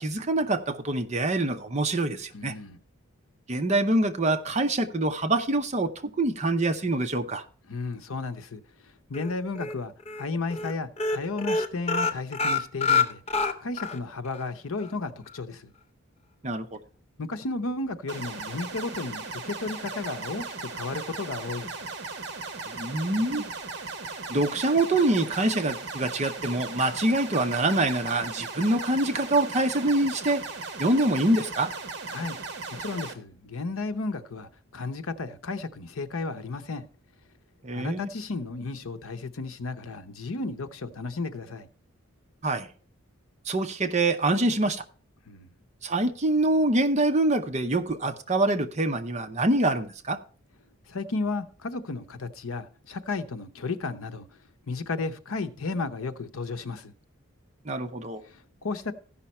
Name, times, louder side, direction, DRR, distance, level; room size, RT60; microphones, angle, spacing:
voice 1, 0.0-2.5 3.5-7.4 16.4-16.8 22.7-23.4 24.3-30.4 30.8-31.7 37.6-38.1 42.4-42.7 43.5-44.8 45.8-50.2 57.7-58.2, right 2 dB, 30° right, 0.7 m, -25 dB
voice 2, 2.3-2.8 7.7-9.9 10.2-13.2 13.6-15.7 17.2-21.8 32.1-32.4 32.8-36.8 37.7-41.7 45.3-45.5 50.9-54.3 54.7-56.9 58.2-58.9, left 3 dB, 75° left, 0.8 m, -33 dB
sound 1, 9.1-9.7 10.1-10.2 10.5-10.7 11.0-14.0 14.3-14.4 14.8-14.9, left 4 dB, 30° left, 0.7 m, -26 dB
sound 2, 18.1-33.1, right 3 dB, 50° right, 1.1 m, -37 dB
14.5 x 5.7 x 4.2 m
head